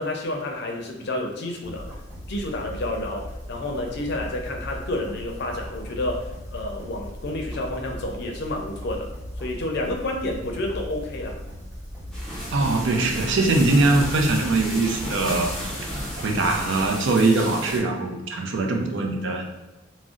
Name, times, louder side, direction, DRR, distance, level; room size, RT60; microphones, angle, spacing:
voice 1, 0.0-1.9 2.3-9.1 9.4-11.4, left 1 dB, 55° left, 1 dB, 0.5 m, -30 dB
sound 1, 1.6-17.1, equal, 15° right, 1.3 m, -38 dB
sound 2, 12.1-17.8, equal, 5° left, 0.6 m, -33 dB
voice 2, 12.5-15.7 16.2-19.4, right 2 dB, 65° right, 2 dB, 0.5 m, -22 dB
2.5 x 2.0 x 3.6 m, 1.1 s
head